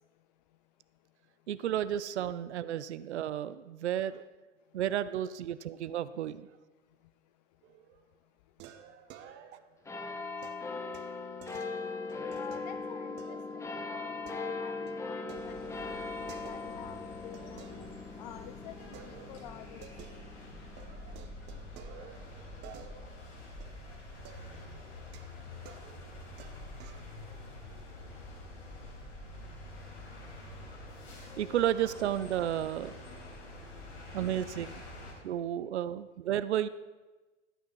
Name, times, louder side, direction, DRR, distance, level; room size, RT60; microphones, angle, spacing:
voice 1, 1.5-4.2 4.7-6.5 31.4-33.0 34.1-34.8 35.2-36.7, right 11 dB, 65° right, 0.6 m, -32 dB
sound 1, 7.6-8.1 8.6-9.8 10.4-12.6 13.2-13.7 14.0-16.9 17.3-18.4 18.9-20.5 20.8-27.1, right 9 dB, 30° right, 0.8 m, -53 dB
sound 2, 9.9-22.7 23.4-23.5, left 3 dB, 10° left, 0.9 m, -40 dB
voice 2, 12.4-16.0 16.4-17.6 18.2-19.9, left 11 dB, 35° left, 0.4 m, -49 dB
sound 3, 15.3-35.1, left 2 dB, 60° left, 4.3 m, -47 dB
12.5 x 8.9 x 4.7 m
figure-of-eight pair, 90°, 37 cm